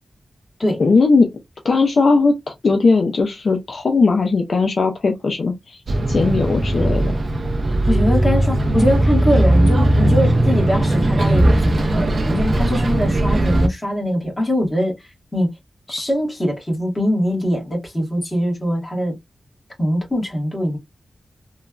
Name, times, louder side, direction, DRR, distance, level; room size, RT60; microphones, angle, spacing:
voice 1, 0.8-1.3 1.6-2.4 2.6-5.8 6.1-7.1, left 4 dB, 60° left, 0.4 m, -17 dB
Bus, 5.9-13.7, right 1 dB, 45° right, 0.4 m, -18 dB
voice 2, 7.6-14.9 15.3-15.5 15.9-19.1 19.8-20.8, equal, 20° left, 1.4 m, -22 dB
3.1 x 2.2 x 2.3 m
wide cardioid pair, 155°, 0 cm